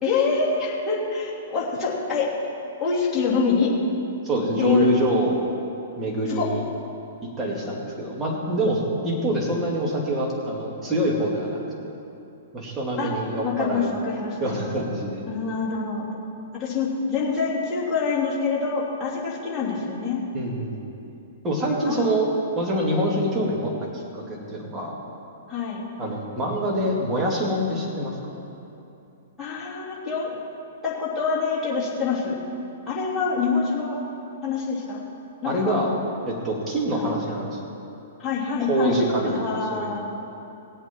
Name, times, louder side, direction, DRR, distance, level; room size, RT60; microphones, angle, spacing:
voice 1, 0.0-2.3 2.8-3.7 4.6-4.9 6.3-6.5 13.0-13.1 13.4-14.5 15.3-16.0 16.6-20.2 21.8-22.2 25.5-25.9 29.4-30.3 30.8-32.4 32.9-34.0 34.4-35.0 35.4-35.8 36.9-37.1 38.2-39.0 39.3-40.1, left 5 dB, 15° left, -8 dB, 3.0 m, -25 dB
voice 2, 4.2-5.3 6.0-6.6 7.2-11.6 12.5-13.9 14.4-15.3 20.3-20.8 21.4-22.3 22.6-25.0 26.0-28.2 35.4-35.9 36.3-37.7 38.6-40.0, right 1 dB, 20° right, -2 dB, 2.4 m, -25 dB
17.5 x 8.2 x 4.5 m, 2.8 s
figure-of-eight pair, 110°, 0 cm